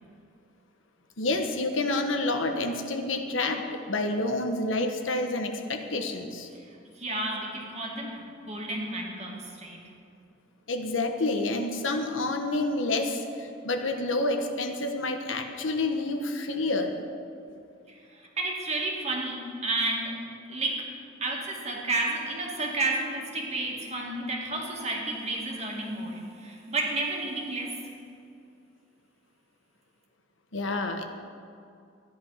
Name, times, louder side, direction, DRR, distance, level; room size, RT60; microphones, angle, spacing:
voice 1, 1.2-6.5 10.7-17.0 30.5-31.0, left 2 dB, 75° left, 5 dB, 1.2 m, -28 dB
voice 2, 6.5-9.8 17.9-20.9 21.2-27.8, right 2 dB, 35° right, -1 dB, 2.2 m, -32 dB
14.0 x 10.5 x 5.7 m, 2.5 s
head